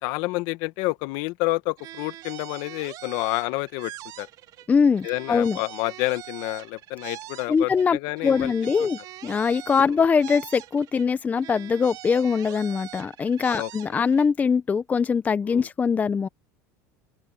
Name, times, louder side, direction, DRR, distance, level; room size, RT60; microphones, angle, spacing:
voice 1, 0.0-3.9 4.2-4.3 5.0-8.5 8.8-8.9 13.5-13.7 15.5-15.7, left 22 dB, 70° left, 1.3 m, -29 dB
sound 1, 1.8-4.7 5.0-7.9 8.2-11.1 11.4-14.3, right 14 dB, 50° right, 2.7 m, -42 dB
voice 2, 4.7-5.6 7.5-16.3, left 6 dB, 20° left, 0.6 m, -22 dB
open air
supercardioid pair, 125°, 8 cm